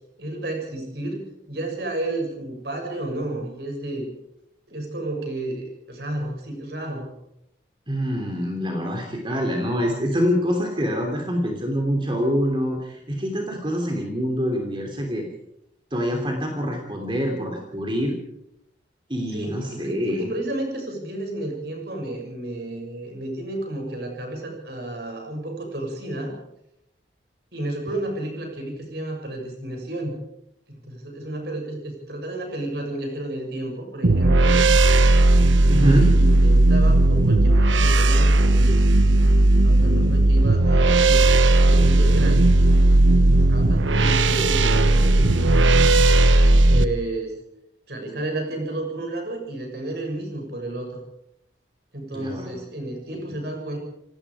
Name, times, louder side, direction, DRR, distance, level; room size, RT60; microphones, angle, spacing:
voice 1, 0.2-4.1 4.7-7.1 19.3-26.3 27.5-30.2 30.7-34.6 35.8-38.9 39.6-42.5 43.3-45.9 46.7-47.4 47.9-51.0 51.9-53.8, right 1 dB, 55° right, 2 dB, 7.0 m, -32 dB
voice 2, 7.9-15.2 15.9-18.2 19.1-20.3 35.7-36.1 52.1-52.6 53.1-53.3, equal, 25° right, 1 dB, 3.1 m, -25 dB
sound 1, 34.0-46.9, right 2 dB, 85° right, 1.2 m, -16 dB
28.0 x 18.5 x 5.0 m, 0.81 s
head